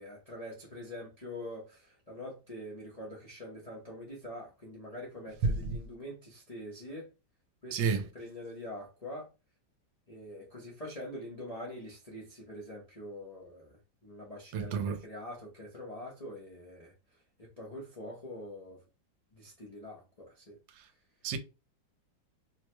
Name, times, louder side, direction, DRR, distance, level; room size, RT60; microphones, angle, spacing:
voice 1, 0.0-7.1 7.6-9.3 10.1-13.8 14.0-16.9 17.4-18.8 19.3-20.6, left 1 dB, 70° left, 0.3 m, -44 dB
voice 2, 7.7-8.1 14.5-15.0 21.2-21.4, right 6 dB, 80° right, 1.3 m, -30 dB
3.1 x 2.1 x 3.0 m
omnidirectional pair, 2.1 m